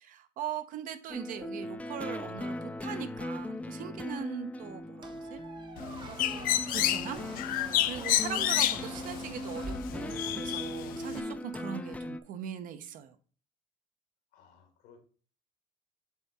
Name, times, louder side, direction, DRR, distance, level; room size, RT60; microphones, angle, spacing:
voice 1, 0.0-5.4 6.3-6.5 6.7-7.2 7.6-13.2, right 9 dB, 60° right, 0.8 m, -40 dB
sound 1, 1.1-12.2, left 1 dB, 10° left, 0.4 m, -39 dB
Squeak, 5.0-10.5, right 3 dB, 30° right, 0.8 m, -46 dB
Bird, 5.8-11.2, left 13 dB, 70° left, 0.5 m, -31 dB
voice 2, 14.3-15.0, left 6 dB, 90° left, 1.9 m, -58 dB
7.3 x 3.6 x 4.2 m
cardioid pair, 135°, 16 cm